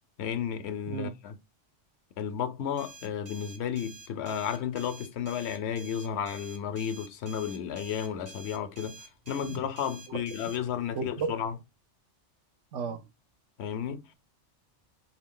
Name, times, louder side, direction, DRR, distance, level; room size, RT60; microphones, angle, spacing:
voice 1, 0.2-1.4 2.2-11.5 13.6-14.0, left 8 dB, 70° left, 0.8 m, -33 dB
sound 1, 2.8-10.6, right 2 dB, 40° right, 0.8 m, -49 dB
voice 2, 10.9-11.3 12.7-13.1, right 5 dB, 80° right, 1.1 m, -33 dB
4.3 x 2.2 x 3.7 m
omnidirectional pair, 1.2 m